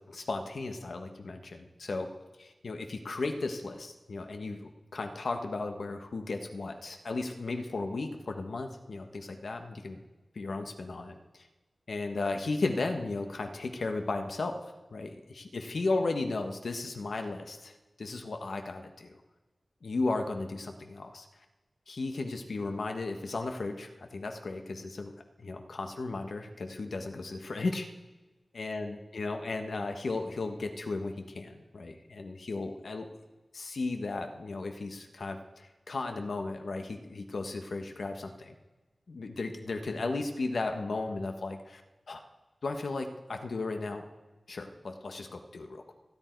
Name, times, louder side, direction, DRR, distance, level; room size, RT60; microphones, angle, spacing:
voice 1, 0.0-2.1 2.4-10.0 10.3-11.5 11.9-17.7 18.0-19.2 19.8-21.3 21.9-25.1 25.4-27.9 28.5-33.1 33.5-38.5 39.1-41.8 42.1-42.2 42.6-44.0 44.5-45.9, left 3 dB, 75° left, 5 dB, 1.4 m, -35 dB
28.0 x 10.5 x 4.7 m, 1.2 s
wide cardioid pair, 75°, 0 cm